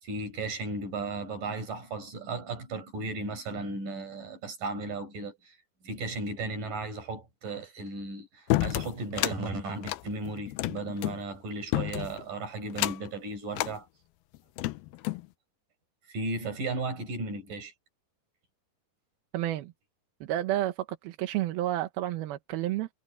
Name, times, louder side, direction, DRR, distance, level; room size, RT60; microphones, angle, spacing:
voice 1, 0.0-5.6 5.8-13.9 16.1-17.7, right 3 dB, 50° right, 7.7 m, -35 dB
sound 1, 8.5-9.4 9.8-11.2 11.7-12.2 12.7-13.1 13.5-13.8 14.3-15.3, left 18 dB, 85° left, 2.2 m, -30 dB
voice 2, 19.3-19.7 20.2-22.9, right 14 dB, 75° right, 2.6 m, -30 dB
omnidirectional pair, 5.1 m